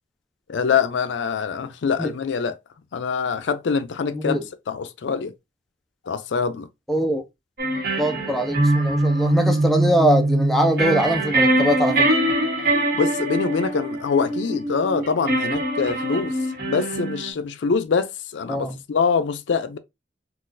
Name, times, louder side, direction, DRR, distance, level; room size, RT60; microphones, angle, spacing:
voice 1, 0.5-2.6 2.9-4.4 4.7-5.3 6.1-6.7 13.0-16.3 16.7-19.8, left 5 dB, 75° left, 0.4 m, -24 dB
voice 2, 4.1-4.4 6.9-7.2 8.0-12.1 18.5-18.8, equal, ahead, 0.5 m, -22 dB
sound 1, 7.6-17.3, right 1 dB, 55° right, 1.2 m, -22 dB
3.9 x 2.4 x 2.5 m
head